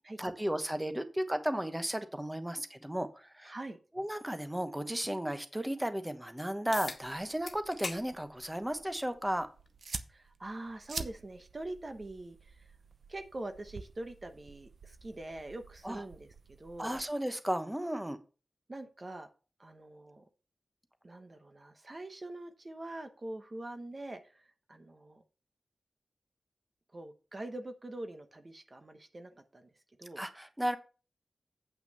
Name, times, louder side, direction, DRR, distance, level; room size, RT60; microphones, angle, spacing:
voice 1, 0.2-3.5 3.9-9.5 15.8-16.0 16.8-18.2 30.2-30.8, right 1 dB, 10° right, 9 dB, 1.0 m, -34 dB
voice 2, 3.5-3.8 10.1-12.7 13.1-17.0 18.7-19.3 19.6-20.2 21.0-25.2 26.9-29.7 30.0-30.2, right 2 dB, 40° right, 7 dB, 1.0 m, -44 dB
sound 1, 6.7-7.0 7.5-8.0 8.4-8.6 9.7-9.8 14.7-14.8, left 3 dB, 55° left, 1.4 m, -40 dB
sound 2, 6.8-17.0, right 4 dB, 75° right, 0.8 m, -48 dB
8.6 x 5.7 x 5.5 m, 0.35 s
wide cardioid pair, 75°, 0 cm